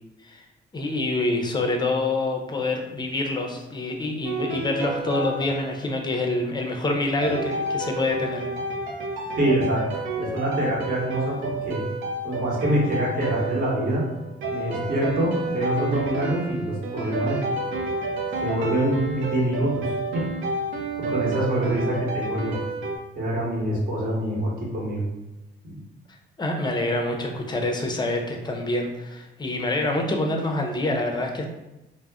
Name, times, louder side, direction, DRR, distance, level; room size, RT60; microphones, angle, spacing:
voice 1, 0.7-8.5 26.4-31.5, left 2 dB, 20° left, 3 dB, 0.5 m, -26 dB
sound 1, 4.2-6.5 7.2-23.0, right 2 dB, 80° right, 0.5 m, -30 dB
voice 2, 9.4-9.8 10.2-11.8 12.2-14.0 14.5-17.4 18.4-20.2 21.1-22.6 23.1-25.0 25.6-25.7, right 1 dB, 45° right, -5 dB, 1.1 m, -25 dB
2.4 x 2.0 x 3.5 m, 0.97 s
cardioid pair, 90°, 20 cm